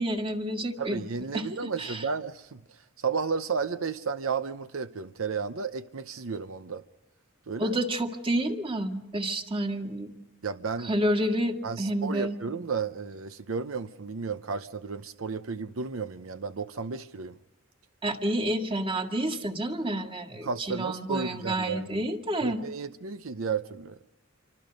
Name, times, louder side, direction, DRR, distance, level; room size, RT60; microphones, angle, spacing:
voice 1, 0.0-1.0 1.3-1.5 1.8-2.0 7.6-10.2 10.8-12.4 18.0-22.6, right 1 dB, 25° right, 1.9 m, -29 dB
voice 2, 0.8-2.6 3.0-6.8 7.5-7.8 10.4-10.9 11.6-17.4 20.4-22.0 22.4-24.0, right 5 dB, 80° right, 0.7 m, -33 dB
28.5 x 25.0 x 5.3 m
head